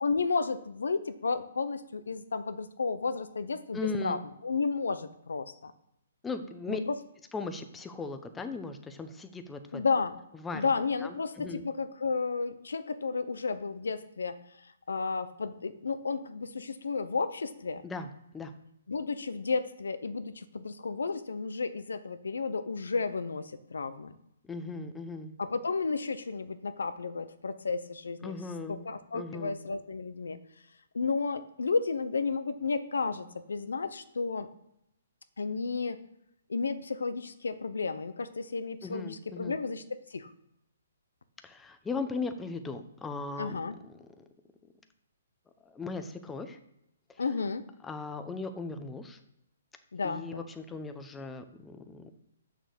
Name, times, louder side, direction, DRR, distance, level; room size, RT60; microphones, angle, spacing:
voice 1, 0.0-5.7 6.7-7.0 9.7-10.2 10.5-17.8 18.9-24.1 25.4-28.4 28.7-30.4 30.9-34.5 35.4-36.0 36.5-40.3 43.4-43.7 47.2-47.7 49.9-50.5, left 4 dB, 90° left, 12 dB, 0.7 m, -32 dB
voice 2, 3.7-4.2 6.2-6.8 7.3-9.8 10.4-10.7 11.0-11.6 17.8-18.1 18.3-18.5 24.5-25.3 28.2-28.8 29.1-29.6 38.8-39.6 41.4-44.2 45.6-46.6 47.8-49.2 50.0-52.1, left 3 dB, 10° left, 7 dB, 0.7 m, -38 dB
6.4 x 6.2 x 6.8 m, 0.80 s
hypercardioid pair, 150°, 0 cm